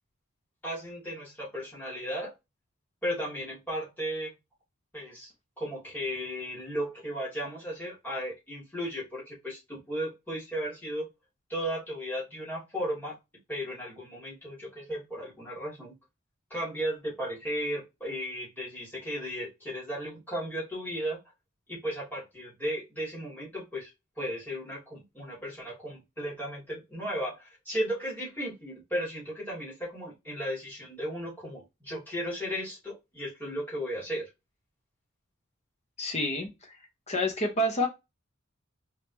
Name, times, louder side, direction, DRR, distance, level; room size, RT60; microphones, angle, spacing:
voice 1, 0.6-2.3 3.0-4.3 4.9-5.3 5.6-11.1 11.5-13.2 13.5-15.9 16.5-21.2 21.7-23.9 24.2-34.3, equal, 10° left, -7 dB, 3.0 m, -35 dB
voice 2, 36.0-36.8 37.1-37.9, left 1 dB, 30° left, 2 dB, 1.3 m, -28 dB
4.6 x 3.8 x 2.9 m, 0.23 s
head